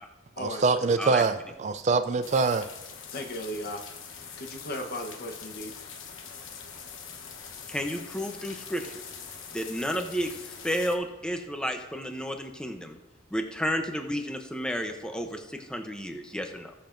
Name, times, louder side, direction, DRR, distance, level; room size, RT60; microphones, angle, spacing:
voice 1, 0.4-2.7, right 4 dB, 35° right, 0.3 m, -24 dB
sound 1, 2.2-11.0, left 6 dB, 85° left, 1.0 m, -43 dB
voice 2, 3.1-3.8 4.4-5.7, left 1 dB, 50° left, 1.1 m, -36 dB
voice 3, 7.7-9.0 9.5-13.0 13.3-16.7, equal, 5° left, 0.7 m, -32 dB
19.5 x 6.8 x 2.6 m
head